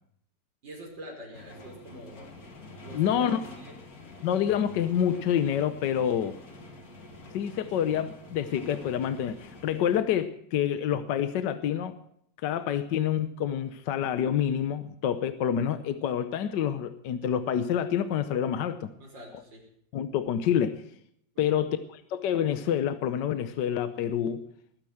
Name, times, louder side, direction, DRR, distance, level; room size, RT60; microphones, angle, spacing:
voice 1, 0.6-2.3 2.8-3.7 19.0-19.7 21.3-21.6, right 1 dB, 80° right, 5.8 m, -45 dB
sound 1, 1.3-10.0, left 2 dB, 50° left, 2.5 m, -47 dB
voice 2, 2.9-3.4 4.2-6.4 7.3-11.9 12.4-18.9 19.9-20.8 21.4-24.4, left 9 dB, 75° left, 1.5 m, -27 dB
20.5 x 9.0 x 7.8 m
omnidirectional pair, 2.0 m